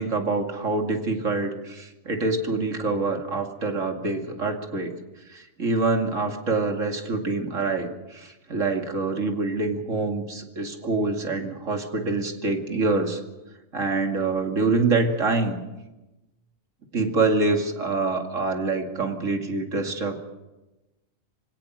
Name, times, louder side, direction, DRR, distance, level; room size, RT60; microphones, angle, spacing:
voice 1, 0.0-4.9 5.3-13.2 13.7-15.6 16.9-20.2, right 3 dB, 65° right, 3 dB, 2.7 m, -26 dB
25.5 x 17.0 x 6.6 m, 1.0 s
omnidirectional pair, 1.4 m